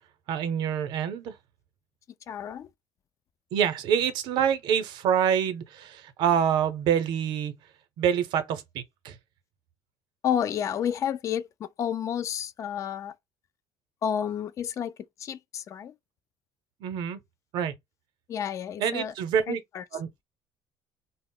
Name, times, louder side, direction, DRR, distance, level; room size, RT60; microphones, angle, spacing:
voice 1, 0.3-1.3 3.5-7.5 8.0-9.1 16.8-17.2 17.5-17.7 18.8-19.6 19.9-20.2, right 8 dB, 65° right, 0.6 m, -26 dB
voice 2, 2.3-2.7 10.2-13.1 14.0-14.9 15.2-15.9 18.3-19.1 19.5-19.8, left 9 dB, 40° left, 0.3 m, -30 dB
2.0 x 2.0 x 3.7 m
cardioid pair, 115°, 8 cm